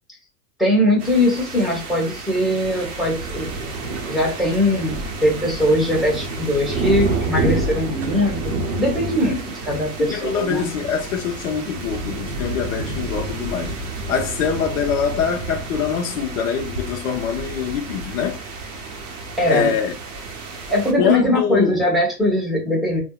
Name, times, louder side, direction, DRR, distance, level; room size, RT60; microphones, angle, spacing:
voice 1, 0.6-3.7 4.1-10.7 19.4-19.7 20.7-23.0, left 1 dB, ahead, 1.0 m, -21 dB
sound 1, 1.0-20.9, right 3 dB, 30° right, 0.6 m, -29 dB
voice 2, 10.0-13.8 14.1-18.4 19.5-19.9 21.0-21.7, left 7 dB, 55° left, 0.8 m, -24 dB
3.5 x 2.1 x 2.3 m
hypercardioid pair, 120°, 49 cm